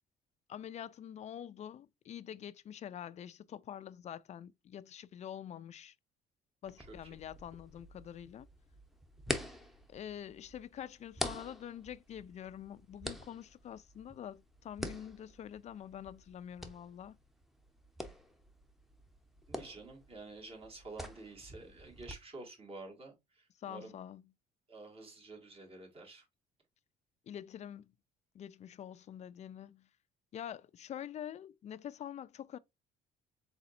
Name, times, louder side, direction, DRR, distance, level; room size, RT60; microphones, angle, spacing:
voice 1, 0.5-5.9 6.6-8.5 9.9-17.2 23.6-24.3 27.3-27.9 28.3-29.9 30.3-32.6, left 10 dB, 40° left, 0.4 m, -46 dB
sound 1, 6.6-22.1, left 1 dB, ahead, 0.8 m, -46 dB
voice 2, 19.5-23.9 24.7-26.2, right 3 dB, 35° right, 2.0 m, -50 dB
4.1 x 4.0 x 2.5 m
cardioid pair, 110°, 17 cm